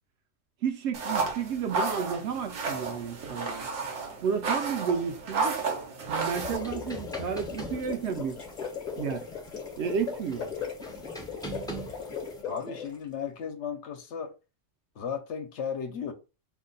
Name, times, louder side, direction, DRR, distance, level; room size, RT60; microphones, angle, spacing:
voice 1, 0.6-3.7 4.2-5.6 6.1-8.4 9.0-9.3 9.8-10.5, right 7 dB, 70° right, 0.8 m, -32 dB
sound 1, 0.9-6.6, right 4 dB, 90° right, 1.1 m, -32 dB
sound 2, 6.2-13.0, left 6 dB, 40° left, 0.8 m, -38 dB
sound 3, 6.4-12.4, right 1 dB, 5° left, 0.3 m, -43 dB
voice 2, 12.4-14.3 15.0-16.1, left 7 dB, 70° left, 0.9 m, -35 dB
2.7 x 2.1 x 3.8 m
omnidirectional pair, 1.3 m